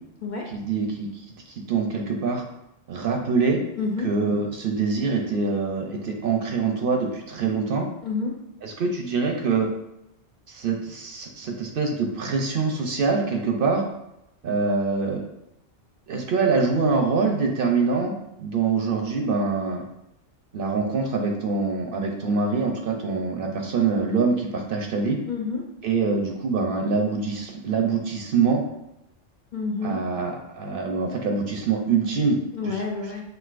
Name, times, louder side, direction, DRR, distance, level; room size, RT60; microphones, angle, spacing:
voice 1, 0.5-2.4 2.9-3.6 4.0-7.9 8.6-9.7 10.5-13.8 14.4-15.2 16.1-19.8 20.5-25.2 25.8-28.6 29.8-32.4 32.7-32.8, right 4 dB, 60° right, 2 dB, 0.7 m, -24 dB
voice 2, 3.8-4.1 8.0-8.4 25.3-25.7 29.5-30.0 32.5-33.2, left 4 dB, 55° left, -1 dB, 0.6 m, -29 dB
6.0 x 2.7 x 2.4 m, 0.84 s
omnidirectional pair, 1.2 m